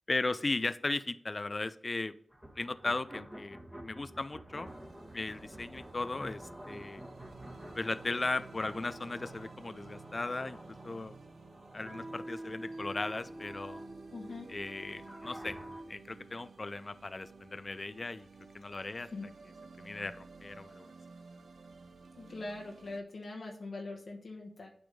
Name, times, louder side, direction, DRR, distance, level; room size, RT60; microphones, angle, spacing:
voice 1, 0.1-2.1 2.6-4.7 5.1-7.0 7.7-11.2 11.7-13.8 14.5-15.6 15.9-18.3 18.5-19.1 19.8-20.9, left 2 dB, 45° left, 14 dB, 0.3 m, -37 dB
sound 1, 2.3-15.8, right 1 dB, 10° right, 1.5 m, -48 dB
sound 2, 4.7-23.0, right 4 dB, 80° right, 0.6 m, -54 dB
voice 2, 14.1-14.5 19.0-19.3 22.2-24.7, left 2 dB, 75° left, -1 dB, 1.0 m, -42 dB
8.9 x 3.5 x 5.3 m, 0.66 s
cardioid pair, 45°, 0 cm